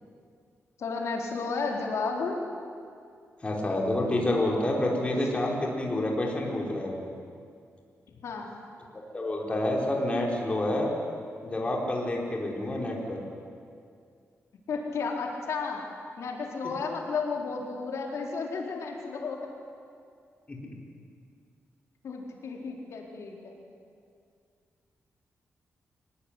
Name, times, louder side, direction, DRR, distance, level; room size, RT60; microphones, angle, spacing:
voice 1, 0.8-2.4 5.0-5.2 8.2-8.5 14.7-15.8 16.2-19.4 22.0-23.6, left 4 dB, 75° left, 0 dB, 4.2 m, -33 dB
voice 2, 3.4-7.0 9.1-10.9 11.4-13.2 20.5-20.6, left 1 dB, 25° left, -1 dB, 4.4 m, -28 dB
24.0 x 19.0 x 9.9 m, 2.3 s
wide cardioid pair, 165°, 5 cm